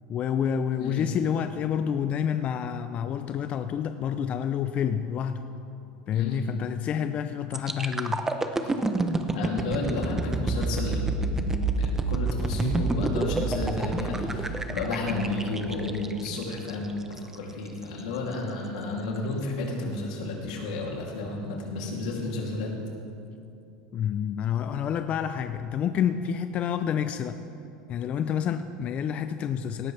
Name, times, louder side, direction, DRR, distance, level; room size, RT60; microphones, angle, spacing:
voice 1, 0.1-5.4 6.1-8.3 23.9-27.4 27.9-29.9, left 8 dB, 35° left, 9 dB, 0.5 m, -28 dB
voice 2, 6.1-6.4 8.6-8.7 9.3-22.7, left 2 dB, 85° left, -2 dB, 2.8 m, -32 dB
sound 1, 7.5-17.3 17.8-18.0, right 3 dB, 10° right, 0.7 m, -29 dB
18.0 x 13.5 x 3.4 m, 2.6 s
supercardioid pair, 130°, 4 cm